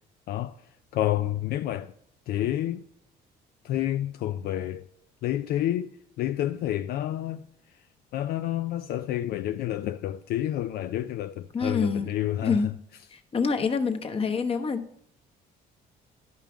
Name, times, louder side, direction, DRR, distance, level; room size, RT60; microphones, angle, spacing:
voice 1, 0.9-1.9 2.3-2.8 3.6-4.9 5.2-7.4 8.1-12.7, left 13 dB, 65° left, 0.4 m, -29 dB
voice 2, 11.5-12.1 12.4-12.7 13.1-14.9, left 5 dB, 35° left, 1.0 m, -26 dB
11.0 x 5.5 x 6.0 m
cardioid pair, 110°, 17 cm